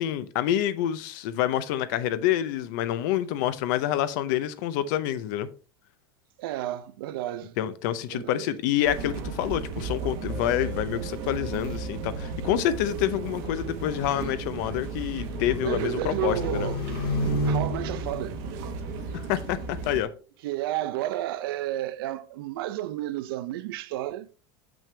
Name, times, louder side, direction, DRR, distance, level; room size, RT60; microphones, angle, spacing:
voice 1, 0.0-5.5 7.6-16.7 19.1-20.1, left 12 dB, 55° left, 0.6 m, -27 dB
voice 2, 6.4-7.6 8.1-8.5 15.6-16.9 17.4-18.4 20.4-24.3, right 13 dB, 75° right, 0.6 m, -31 dB
sound 1, 8.8-20.0, right 4 dB, 50° right, 1.1 m, -35 dB
sound 2, 10.3-20.7 21.1-21.2, right 7 dB, 15° right, 0.7 m, -45 dB
sound 3, 13.8-19.3, left 1 dB, 80° left, 1.9 m, -32 dB
6.8 x 6.1 x 3.3 m
supercardioid pair, 170°, 12 cm